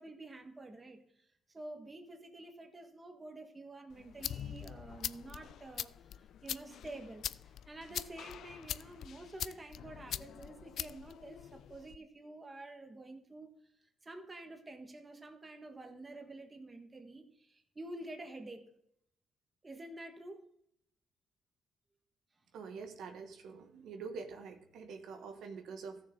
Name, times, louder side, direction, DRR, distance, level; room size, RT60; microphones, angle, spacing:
voice 1, 0.0-5.9 6.4-13.5 13.8-18.6 19.6-20.4, right 2 dB, 25° right, 5 dB, 1.5 m, -49 dB
sound 1, 3.9-12.0, left 10 dB, 70° left, 0.3 m, -43 dB
voice 2, 22.5-26.0, right 5 dB, 75° right, 5 dB, 1.2 m, -46 dB
14.0 x 6.6 x 3.8 m, 0.71 s
cardioid pair, 90°, 0 cm